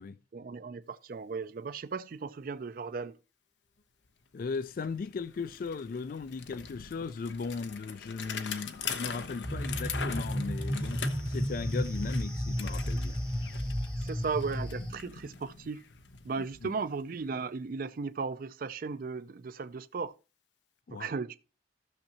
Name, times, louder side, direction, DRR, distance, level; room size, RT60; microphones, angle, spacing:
voice 1, 0.3-3.2 14.0-15.8 16.2-20.1 20.9-21.4, right 4 dB, 50° right, 0.4 m, -36 dB
Bicycle, 4.1-4.2 4.4-17.3, left 6 dB, 80° left, 0.8 m, -43 dB
voice 2, 4.3-13.2 16.6-16.7 20.9-21.1, left 4 dB, 50° left, 0.3 m, -37 dB
sound 1, 9.4-14.9, equal, 5° left, 0.7 m, -33 dB
14.5 x 6.5 x 2.8 m
head